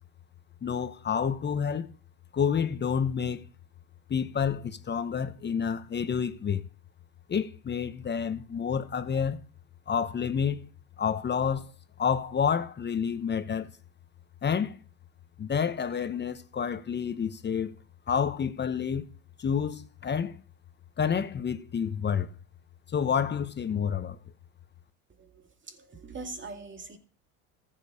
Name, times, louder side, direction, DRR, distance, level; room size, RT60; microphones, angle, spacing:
voice 1, 0.6-1.9 2.3-3.5 4.1-6.6 7.3-9.4 9.9-10.6 11.0-11.7 12.0-13.7 14.4-14.8 15.4-17.7 18.1-19.1 19.4-20.4 21.0-22.3 22.9-24.2, left 7 dB, 25° left, 0.9 m, -29 dB
voice 2, 25.1-27.0, right 3 dB, 25° right, 2.2 m, -43 dB
14.5 x 7.6 x 4.9 m
supercardioid pair, 90°, 43 cm